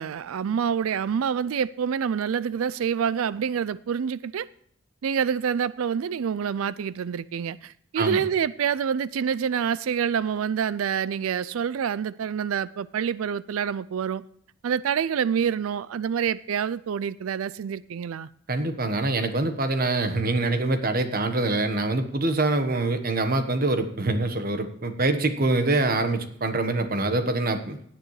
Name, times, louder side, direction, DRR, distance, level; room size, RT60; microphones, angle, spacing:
voice 1, 0.0-4.5 5.0-14.2 14.6-18.3, right 7 dB, 80° right, 0.4 m, -27 dB
voice 2, 18.5-27.8, right 2 dB, 45° right, 1.2 m, -25 dB
17.5 x 9.3 x 3.2 m
head